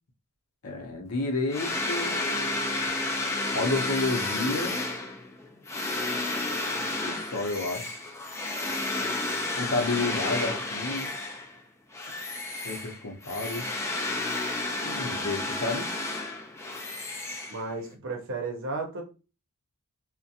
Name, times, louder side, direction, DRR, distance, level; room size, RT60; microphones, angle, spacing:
voice 1, 0.6-2.2 3.5-4.8 7.0-7.8 9.5-11.1 12.6-13.7 14.8-15.9, left 2 dB, 75° left, 0.7 m, -30 dB
sound 1, 1.5-11.6 11.9-17.9, left 2 dB, 10° left, 0.3 m, -31 dB
voice 2, 17.5-19.0, right 3 dB, 60° right, 0.7 m, -33 dB
2.5 x 2.1 x 2.7 m
head